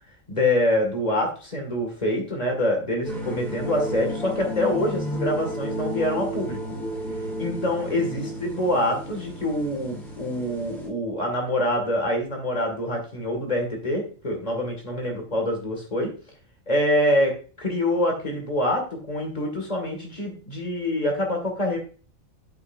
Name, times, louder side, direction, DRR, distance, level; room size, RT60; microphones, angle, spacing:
voice 1, 0.3-6.6 7.4-16.1 16.7-21.8, left 1 dB, 30° left, 2 dB, 2.1 m, -25 dB
sound 1, 3.0-10.9, equal, ahead, 3.4 m, -32 dB
8.4 x 8.3 x 2.6 m, 0.39 s
omnidirectional pair, 1.4 m